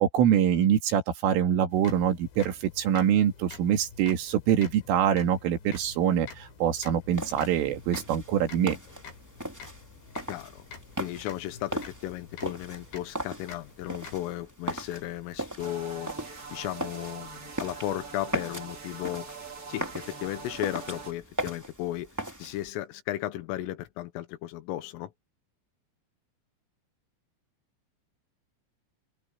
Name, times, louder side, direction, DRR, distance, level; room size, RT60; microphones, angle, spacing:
voice 1, 0.0-8.8, right 9 dB, 80° right, 4.9 m, -24 dB
sound 1, 1.7-14.2, left 5 dB, 65° left, 6.4 m, -48 dB
sound 2, 7.1-22.7, right 1 dB, 20° right, 0.5 m, -39 dB
voice 2, 10.3-10.6 11.0-16.1 16.5-19.3 19.7-22.1 22.4-25.1, left 14 dB, 85° left, 3.8 m, -35 dB
sound 3, 15.6-21.1, right 5 dB, 40° right, 1.3 m, -43 dB
omnidirectional pair, 5.7 m